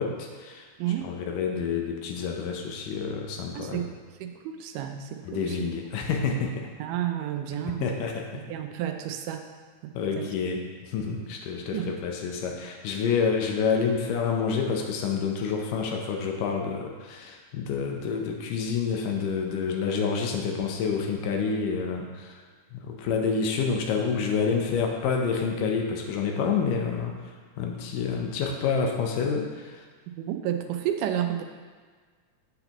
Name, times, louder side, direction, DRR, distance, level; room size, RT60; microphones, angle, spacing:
voice 1, 0.0-0.7 1.0-3.9 5.3-6.7 7.8-8.5 9.9-22.4 22.7-27.2 27.6-29.8, left 5 dB, 85° left, 2 dB, 2.4 m, -28 dB
voice 2, 0.8-1.1 3.5-3.9 4.2-5.6 6.8-7.9 8.3-9.5 9.8-10.3 11.7-11.9 30.1-31.4, right 11 dB, 85° right, 5 dB, 2.2 m, -31 dB
7.9 x 6.9 x 3.0 m, 1.5 s
omnidirectional pair, 3.7 m